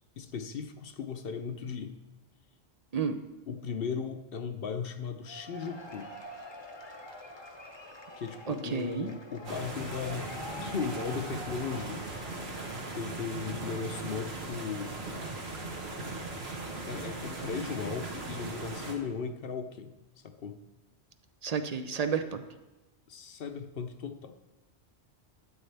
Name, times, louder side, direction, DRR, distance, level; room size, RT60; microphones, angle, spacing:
voice 1, 0.2-1.9 3.5-6.1 8.2-10.3 10.6-12.0 12.9-15.0 16.9-19.9 20.2-20.6 23.1-24.3, left 6 dB, 60° left, 7 dB, 0.9 m, -37 dB
Cheering / Applause / Crowd, 5.2-14.2, left 1 dB, 25° left, 0.8 m, -46 dB
voice 2, 8.5-9.1 21.4-22.4, right 6 dB, 45° right, 8 dB, 0.6 m, -31 dB
sound 1, 9.4-18.9, right 2 dB, 70° right, 1.5 m, -39 dB
12.5 x 8.4 x 3.4 m, 1.0 s
omnidirectional pair, 1.1 m